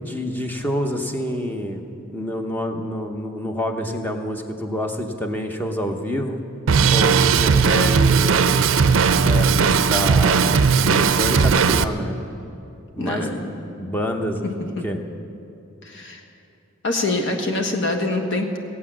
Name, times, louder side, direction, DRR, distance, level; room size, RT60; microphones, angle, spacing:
voice 1, 0.0-6.4 6.9-8.7 9.2-12.2 12.9-13.3 13.8-14.5 14.8-15.0, equal, 10° left, 4 dB, 0.8 m, -27 dB
Drum kit, 6.7-11.8, right 5 dB, 70° right, 0.5 m, -17 dB
voice 2, 13.0-13.6 14.4-14.8 15.8-16.2 16.8-18.6, left 2 dB, 60° left, 3 dB, 1.5 m, -25 dB
17.5 x 8.4 x 7.3 m, 2.8 s
head